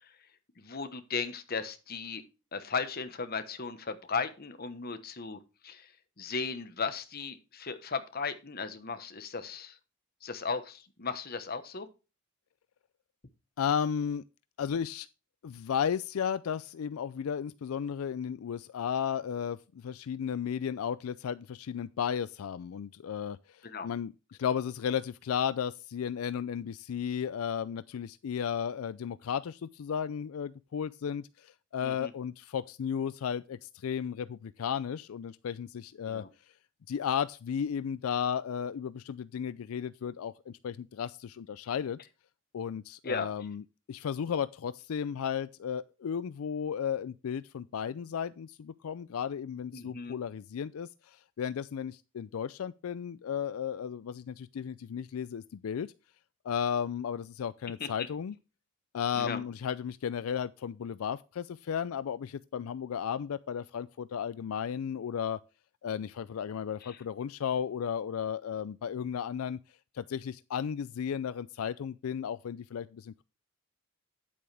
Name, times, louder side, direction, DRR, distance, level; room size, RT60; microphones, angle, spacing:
voice 1, 0.6-2.2 2.5-5.8 6.2-9.7 10.2-11.9 23.6-23.9 31.8-32.1 36.1-36.3 43.0-43.3 49.7-50.1 57.8-57.9 59.1-59.4 66.8-67.0, left 5 dB, 45° left, 1.1 m, -36 dB
voice 2, 13.6-14.2 14.6-15.1 15.4-24.1 24.4-36.2 36.9-42.0 42.5-55.9 56.4-58.4 58.9-65.4 65.8-69.6 69.9-73.2, left 8 dB, 85° left, 0.4 m, -34 dB
9.2 x 8.6 x 3.4 m
head